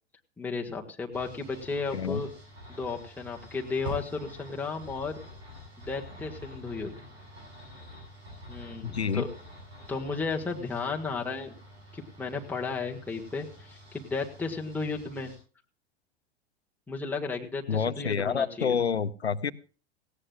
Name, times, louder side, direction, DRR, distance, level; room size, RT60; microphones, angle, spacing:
voice 1, 0.4-2.3 2.7-5.2 5.8-7.0 8.5-9.3 9.9-11.5 11.9-15.3 16.9-18.7, left 4 dB, 5° left, 0 dB, 1.5 m, -34 dB
sound 1, 1.1-15.4, left 1 dB, 80° right, 7.4 m, -47 dB
voice 2, 1.9-2.2 8.8-9.3 17.7-19.5, left 6 dB, 85° left, 18 dB, 0.7 m, -28 dB
18.0 x 17.0 x 2.3 m, 0.36 s
figure-of-eight pair, 90°, 32 cm